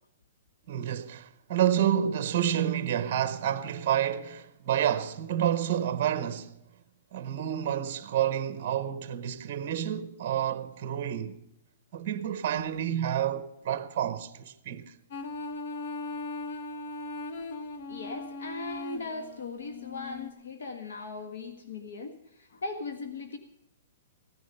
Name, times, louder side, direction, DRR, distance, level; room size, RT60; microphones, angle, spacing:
voice 1, 0.7-6.5 7.1-11.4 11.9-14.9, right 10 dB, 35° right, 0.8 m, -29 dB
sound 1, 15.1-20.3, left 3 dB, 45° left, 1.0 m, -39 dB
voice 2, 17.9-23.4, left 3 dB, 80° left, 1.5 m, -39 dB
16.0 x 10.0 x 5.4 m
hypercardioid pair, 175°, 0 cm